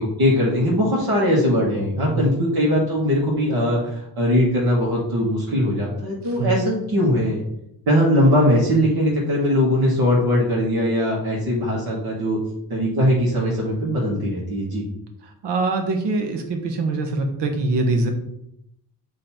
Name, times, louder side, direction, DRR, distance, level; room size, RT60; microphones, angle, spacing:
voice 1, 0.0-7.4 7.9-12.4 12.7-14.8, equal, 60° right, -5 dB, 1.8 m, -20 dB
voice 2, 2.0-2.3 6.4-6.5 15.4-18.1, right 3 dB, 85° right, 5 dB, 1.3 m, -23 dB
7.8 x 3.2 x 4.4 m, 0.78 s
cardioid pair, 160°, 41 cm